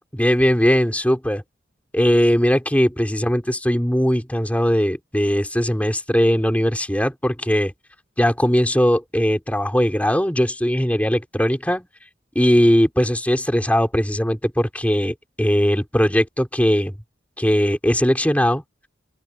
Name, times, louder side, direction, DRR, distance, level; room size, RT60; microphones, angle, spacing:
voice 1, 0.1-1.4 1.9-7.7 8.2-11.9 12.4-16.9 17.4-18.6, equal, 10° left, 3.8 m, -19 dB
open air
head